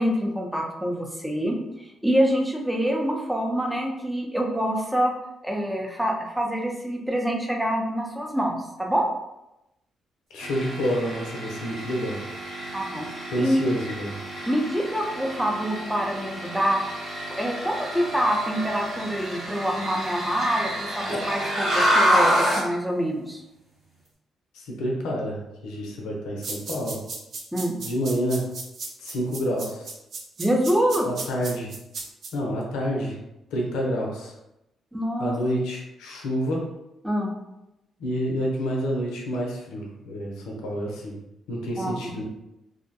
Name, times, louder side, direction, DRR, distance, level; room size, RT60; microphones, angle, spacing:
voice 1, 0.0-5.1 5.4-9.1 12.7-13.1 13.4-13.6 14.5-17.0 17.4-23.4 27.5-27.7 30.4-31.1 34.9-35.4 37.0-37.3 41.8-42.1, equal, 5° right, 1 dB, 0.6 m, -26 dB
voice 2, 10.3-12.2 13.3-14.2 24.5-27.0 27.8-28.5 29.0-29.9 31.1-31.7 32.3-33.2 33.5-34.3 35.2-36.6 38.0-41.2 41.5-42.2, equal, 90° left, -1 dB, 0.5 m, -28 dB
sound 1, 10.4-22.7, equal, 80° right, 1.1 m, -28 dB
sound 2, 26.4-32.3, right 3 dB, 65° right, 0.5 m, -35 dB
2.6 x 2.1 x 2.6 m, 0.91 s
supercardioid pair, 65°, 0 cm